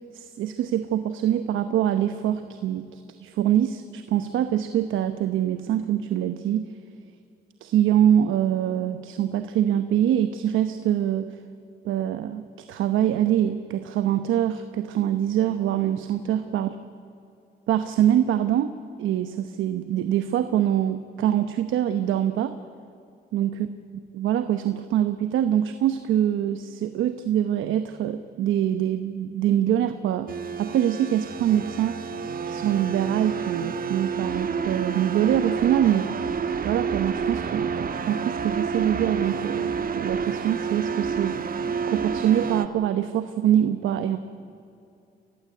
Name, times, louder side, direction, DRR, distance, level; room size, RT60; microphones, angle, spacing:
voice 1, 0.1-6.6 7.6-11.4 11.8-12.4 12.7-16.8 17.7-18.7 19.0-22.6 23.3-23.5 24.2-30.3 30.6-32.0 32.5-36.1 36.6-41.4 41.8-44.2, right 10 dB, 85° right, 10 dB, 1.0 m, -24 dB
sound 1, 30.3-42.7, right 6 dB, 45° right, 1.3 m, -29 dB
28.5 x 15.5 x 9.1 m, 2.6 s
cardioid pair, 90°, 20 cm